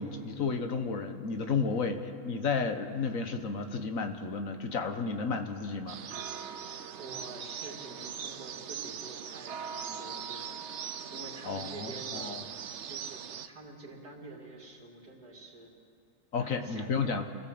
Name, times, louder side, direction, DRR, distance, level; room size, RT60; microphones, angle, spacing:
voice 1, 0.0-2.0 2.2-6.0 11.4-12.4 16.3-17.2, left 5 dB, 60° left, 7 dB, 1.5 m, -32 dB
sound 1, 5.9-13.5, right 7 dB, 55° right, 0.9 m, -40 dB
voice 2, 6.5-10.7 11.1-12.4 12.9-15.7 16.3-17.2, right 2 dB, 75° right, 0 dB, 3.4 m, -47 dB
28.0 x 17.5 x 7.8 m, 2.7 s
omnidirectional pair, 1.6 m